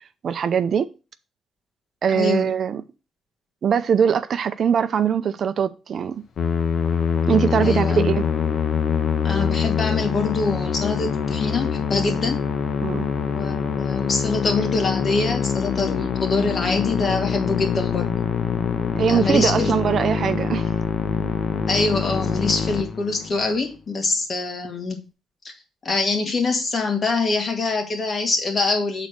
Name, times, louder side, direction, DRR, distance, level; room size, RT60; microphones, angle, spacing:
voice 1, 0.2-0.9 2.0-2.8 3.6-6.2 7.3-8.2 12.8-13.1 19.0-20.7, right 7 dB, 55° right, 0.5 m, -21 dB
voice 2, 2.1-2.5 7.6-8.1 9.2-12.4 13.2-18.1 19.1-19.7 21.7-25.0 25.4-25.5 25.8-29.1, left 3 dB, 45° left, 2.1 m, -24 dB
Musical instrument, 6.4-23.5, left 6 dB, 60° left, 1.0 m, -24 dB
6.3 x 4.1 x 6.4 m
cardioid pair, 90°, 0 cm